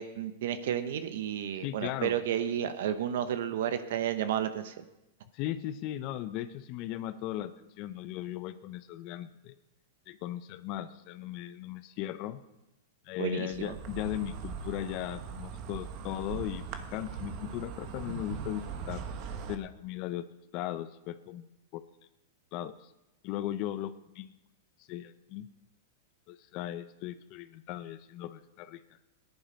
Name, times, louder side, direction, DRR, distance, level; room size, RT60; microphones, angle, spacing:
voice 1, 0.0-4.8 13.2-13.7, right 10 dB, 70° right, 10 dB, 0.9 m, -32 dB
voice 2, 1.6-2.2 5.3-9.5 10.1-12.4 13.1-19.0 19.5-20.2 20.5-21.5 21.7-21.8 22.5-22.7 23.2-24.3 24.9-25.5 26.3-28.8, left 13 dB, 45° left, 13 dB, 0.6 m, -37 dB
Insect, 13.5-19.6, right 7 dB, 45° right, 1.1 m, -40 dB
15.0 x 10.5 x 5.2 m, 0.93 s
hypercardioid pair, 135°, 0 cm